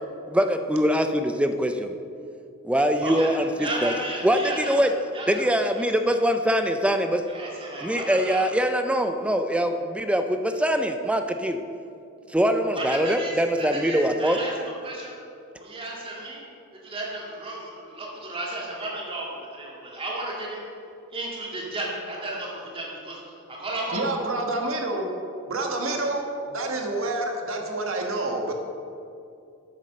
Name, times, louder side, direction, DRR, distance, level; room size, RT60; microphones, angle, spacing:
voice 1, 0.3-1.9 2.6-3.9 4.2-4.9 5.3-7.2 7.8-11.6 12.3-14.4, equal, 5° right, 7 dB, 0.4 m, -23 dB
voice 2, 3.6-5.4 5.7-5.8 7.3-8.4 12.7-15.2 15.6-16.4 16.8-20.6 21.1-23.2 23.5-24.1, right 1 dB, 25° right, -4 dB, 2.2 m, -34 dB
voice 3, 23.9-25.1 25.5-28.5, right 2 dB, 70° right, 2 dB, 1.5 m, -28 dB
9.3 x 7.5 x 6.6 m, 2.6 s
head